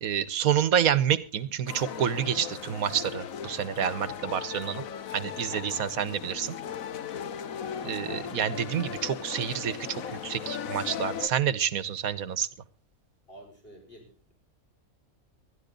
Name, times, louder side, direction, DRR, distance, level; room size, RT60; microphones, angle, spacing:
voice 1, 0.0-4.8 5.1-6.6 7.8-12.5, right 9 dB, 80° right, 16 dB, 1.4 m, -28 dB
sound 1, 1.7-11.3, left 8 dB, 75° left, 1.4 m, -37 dB
voice 2, 6.6-7.0 13.3-14.3, right 1 dB, 40° left, 2 dB, 5.6 m, -51 dB
20.5 x 13.0 x 3.8 m, 0.34 s
omnidirectional pair, 1.5 m